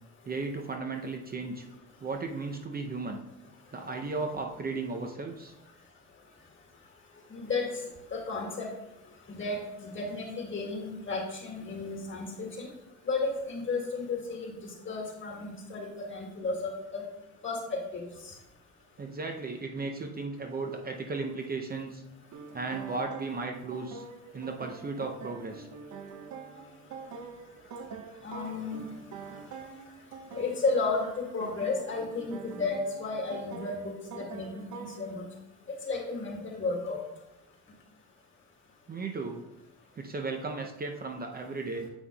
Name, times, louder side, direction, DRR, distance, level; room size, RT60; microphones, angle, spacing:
voice 1, 0.2-1.6 2.0-3.2 3.7-5.5 19.0-22.0 22.5-24.1 24.3-25.7 38.9-39.4 40.0-41.9, right 3 dB, 30° right, 3 dB, 0.6 m, -35 dB
voice 2, 7.3-7.7 8.1-8.7 9.3-12.7 13.0-17.0 17.4-18.3 28.2-28.9 30.3-35.2 35.9-37.0, left 3 dB, 40° left, 0 dB, 2.0 m, -33 dB
sound 1, 22.3-35.1, right 5 dB, 70° right, 0.7 m, -45 dB
8.0 x 5.7 x 2.3 m, 0.96 s
cardioid pair, 90°, 30 cm